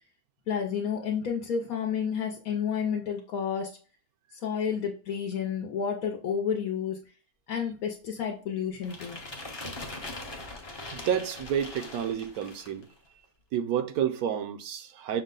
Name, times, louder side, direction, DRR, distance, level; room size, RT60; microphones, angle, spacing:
voice 1, 0.5-3.8 4.4-7.0 7.5-9.2, left 7 dB, 75° left, 1.2 m, -30 dB
sound 1, 8.8-12.8, left 2 dB, 25° left, 0.6 m, -41 dB
voice 2, 10.9-12.9 13.5-15.2, right 9 dB, 80° right, 1.1 m, -30 dB
6.3 x 2.2 x 3.7 m
omnidirectional pair, 1.6 m